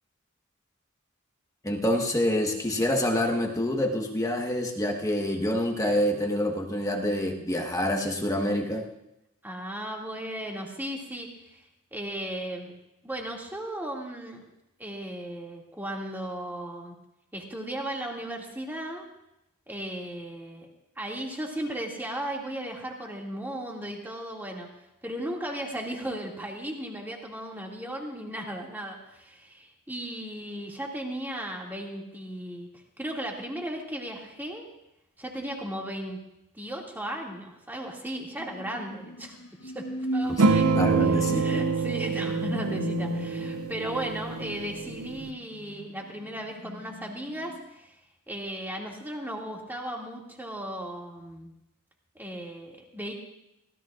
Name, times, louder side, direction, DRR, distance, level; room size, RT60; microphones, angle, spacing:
voice 1, 1.6-8.9 40.5-41.6, left 1 dB, 15° left, 1 dB, 1.3 m, -27 dB
voice 2, 9.4-11.7 11.9-12.8 13.0-14.4 14.8-16.9 17.3-19.0 19.7-20.7 21.0-24.7 25.0-32.7 33.0-34.7 35.2-36.2 36.5-40.7 41.0-48.0 48.3-51.5 52.1-53.1, right 1 dB, 10° right, -1 dB, 2.3 m, -36 dB
sound 1, 38.4-47.6, right 1 dB, 75° left, 0.9 m, -35 dB
sound 2, 40.4-45.3, right 4 dB, 90° right, 0.5 m, -27 dB
24.5 x 16.5 x 2.5 m, 0.86 s
head